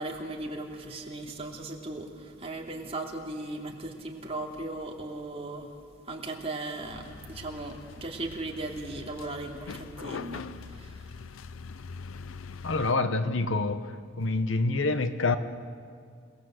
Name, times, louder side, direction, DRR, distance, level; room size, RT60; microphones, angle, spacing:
voice 1, 0.0-5.7 6.1-11.0, right 2 dB, 30° right, 0 dB, 2.9 m, -37 dB
sound 1, 6.9-12.9, left 5 dB, 85° left, 0.5 m, -43 dB
voice 2, 12.6-15.4, left 3 dB, 65° left, 10 dB, 1.1 m, -27 dB
28.5 x 19.0 x 7.8 m, 2.2 s
head